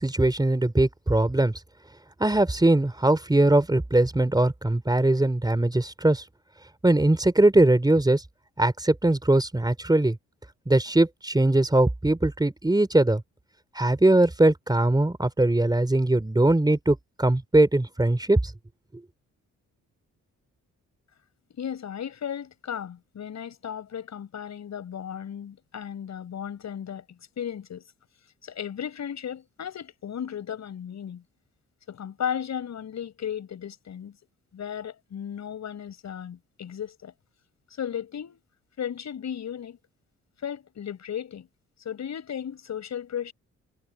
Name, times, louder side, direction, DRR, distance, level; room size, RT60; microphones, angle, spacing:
voice 1, 0.0-1.5 2.2-6.2 6.8-8.2 8.6-10.2 10.7-13.2 13.8-18.4, right 2 dB, 15° right, 3.7 m, -21 dB
voice 2, 21.5-27.9 28.4-31.2 31.9-34.2 34.5-37.1 37.7-38.4 38.8-39.8 40.4-41.5 41.8-43.3, left 8 dB, 65° left, 7.7 m, -35 dB
cardioid pair, 80°, 29 cm